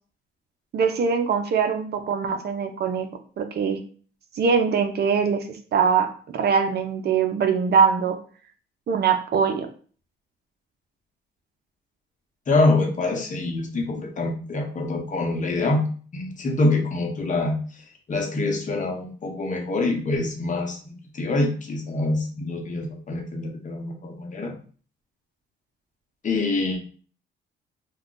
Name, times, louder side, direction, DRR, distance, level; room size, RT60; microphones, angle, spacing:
voice 1, 0.7-3.1 3.4-3.8 4.4-5.4 5.7-8.2 8.9-9.7, right 6 dB, 55° right, 7 dB, 0.5 m, -22 dB
voice 2, 12.5-15.8 16.1-17.5 18.1-24.5 26.2-26.8, left 2 dB, 40° left, 2 dB, 0.8 m, -25 dB
2.3 x 2.2 x 3.7 m, 0.41 s
cardioid pair, 90°, 20 cm